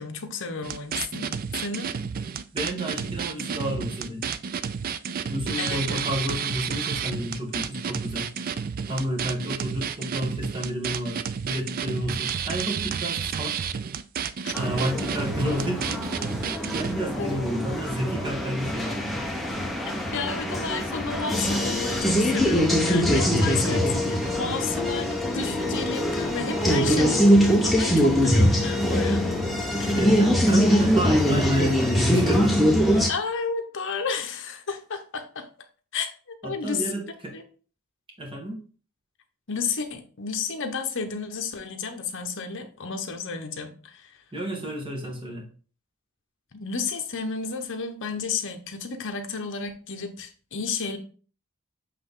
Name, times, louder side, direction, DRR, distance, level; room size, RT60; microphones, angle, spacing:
voice 1, 0.0-1.9 5.6-6.0 14.4-14.5 17.2-17.4 19.8-29.3 29.8-30.0 33.1-35.5 35.9-36.9 37.3-37.4 39.5-44.1 46.5-51.0, left 5 dB, 55° left, 6 dB, 0.9 m, -32 dB
weird amen, 0.6-16.9, right 7 dB, 40° right, 0.3 m, -31 dB
voice 2, 2.5-4.3 5.3-8.3 8.9-13.6 14.5-16.3 16.7-19.3 29.9-33.0 36.4-37.3 38.2-38.6 44.3-45.5, right 1 dB, 25° right, 0 dB, 1.7 m, -31 dB
sound 1, 14.5-33.1, equal, ahead, 0.9 m, -23 dB
7.7 x 3.4 x 3.8 m, 0.39 s
head